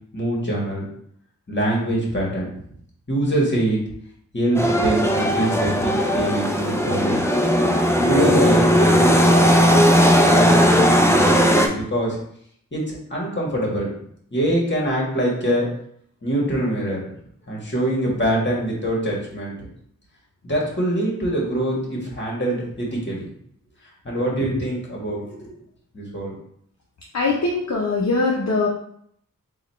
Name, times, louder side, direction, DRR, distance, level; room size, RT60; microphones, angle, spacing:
voice 1, 0.1-0.8 1.5-2.5 3.1-3.8 4.3-7.2 8.0-9.8 10.2-12.2 12.7-13.9 14.3-15.7 16.2-17.0 17.5-19.6 20.4-23.3 24.0-25.5 25.9-26.3, right 1 dB, 35° left, -3 dB, 1.4 m, -24 dB
sound 1, 4.5-11.7, equal, 10° left, 0.5 m, -17 dB
voice 2, 27.1-28.7, left 3 dB, 50° left, -3 dB, 0.7 m, -21 dB
3.9 x 2.4 x 4.2 m, 0.68 s
wide cardioid pair, 75°, 33 cm